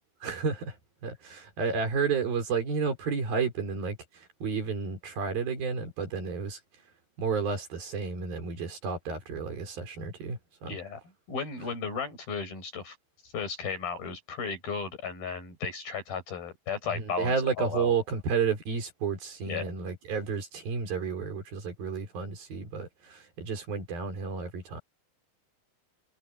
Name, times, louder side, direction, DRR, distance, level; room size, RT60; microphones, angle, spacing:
voice 1, 0.2-0.8 1.0-6.6 7.2-10.8 16.9-24.8, right 5 dB, 80° right, 6.6 m, -31 dB
voice 2, 10.7-11.0 11.3-13.0 13.2-17.9 19.5-19.7, left 5 dB, 80° left, 9.8 m, -35 dB
omnidirectional pair, 4.2 m